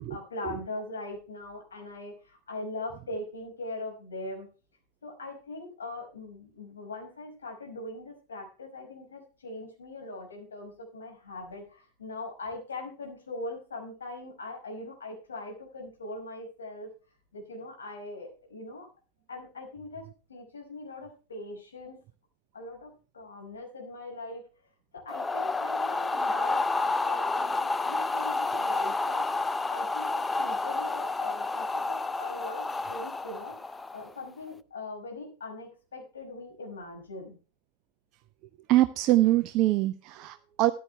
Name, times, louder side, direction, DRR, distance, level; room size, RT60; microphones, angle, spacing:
voice 1, 0.0-4.5 5.0-16.9 17.3-18.9 19.3-22.0 22.5-24.5 24.9-37.4, left 2 dB, 70° left, 2 dB, 5.5 m, -41 dB
sound 1, 25.1-34.2, left 3 dB, 10° left, 0.5 m, -30 dB
voice 2, 38.7-40.7, right 16 dB, 40° right, 11 dB, 0.6 m, -24 dB
14.5 x 10.5 x 3.3 m, 0.35 s
figure-of-eight pair, 90°, 0 cm